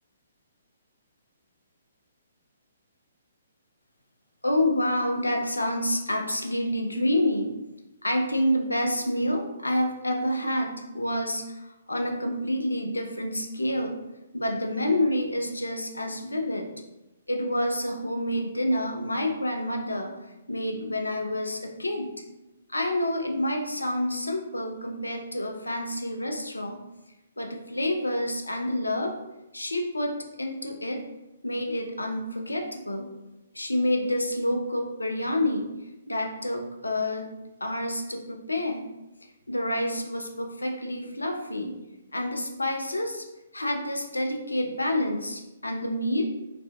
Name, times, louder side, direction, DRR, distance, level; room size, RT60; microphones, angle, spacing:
voice 1, 4.4-7.5 8.0-14.0 14.3-16.7 17.3-20.1 20.5-22.1 22.7-26.8 27.4-29.1 29.5-31.0 31.4-33.1 33.5-35.7 36.1-37.3 37.6-38.9 39.5-41.7 42.1-43.2 43.5-46.3, left 1 dB, 80° left, 3 dB, 0.4 m, -28 dB
2.6 x 2.4 x 2.2 m, 0.97 s
figure-of-eight pair, 130°, 0 cm